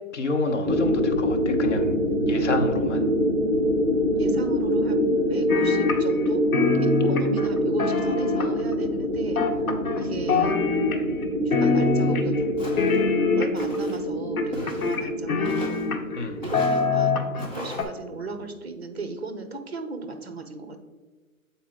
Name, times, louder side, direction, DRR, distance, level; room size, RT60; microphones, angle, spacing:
voice 1, 0.1-2.0 2.3-3.0 16.1-16.4, left 2 dB, 55° left, 4 dB, 0.9 m, -28 dB
sound 1, 0.6-17.6, equal, 15° right, 0.9 m, -25 dB
voice 2, 4.2-6.4 6.7-9.4 10.0-10.6 11.4-12.7 13.4-15.7 16.4-20.8, right 3 dB, 50° right, 8 dB, 0.7 m, -36 dB
sound 2, 5.5-6.3 6.5-8.7 9.4-10.0 10.3-11.2 11.5-12.4 12.8-13.8 14.4-16.2 16.5-17.5 17.8-17.9, left 4 dB, 80° left, 0.9 m, -24 dB
Walk footsteps, 12.6-13.0 13.6-14.0 14.5-15.0 15.5-15.9 16.4-16.8 17.4-17.9, left 1 dB, 30° left, 1.2 m, -38 dB
7.4 x 4.2 x 3.7 m, 1.3 s
hypercardioid pair, 175°, 42 cm